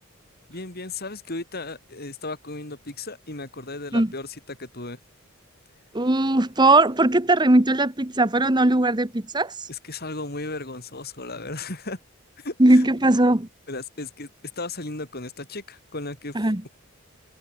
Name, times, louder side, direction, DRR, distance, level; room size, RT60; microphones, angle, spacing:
voice 1, 0.5-5.0 9.7-12.0 12.4-12.8 13.7-14.3 14.6-16.4, left 2 dB, 45° left, 4.7 m, -35 dB
voice 2, 5.9-9.7 12.6-13.5 16.3-16.6, right 2 dB, 20° right, 1.3 m, -19 dB
head